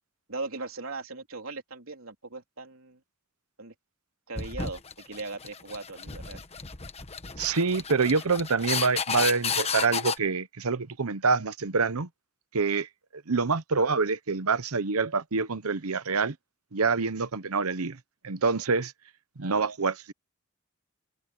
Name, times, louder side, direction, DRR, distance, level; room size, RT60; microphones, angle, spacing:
voice 1, 0.3-3.0 3.6-3.7 4.3-6.4 19.4-19.7, right 3 dB, 70° right, 3.7 m, -39 dB
sound 1, 4.4-10.2, left 6 dB, 30° left, 1.3 m, -32 dB
voice 2, 7.4-12.1 12.5-16.3 16.7-18.0 18.2-18.9 19.4-20.1, right 4 dB, 85° right, 0.9 m, -26 dB
head